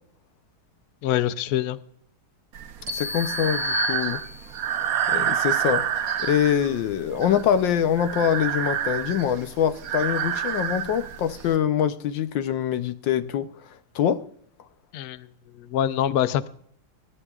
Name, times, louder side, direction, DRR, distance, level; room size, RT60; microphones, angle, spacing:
voice 1, 1.0-1.8 14.9-15.3 15.6-16.5, left 11 dB, 85° left, 0.8 m, -24 dB
Breathing, 2.5-11.6, right 9 dB, 80° right, 0.8 m, -28 dB
voice 2, 2.9-4.2 5.1-5.8 6.3-13.5 13.9-14.2, left 9 dB, 65° left, 1.4 m, -24 dB
sound 1, 2.9-4.8, left 4 dB, 60° right, 3.0 m, -32 dB
23.5 x 13.0 x 2.4 m
omnidirectional pair, 2.4 m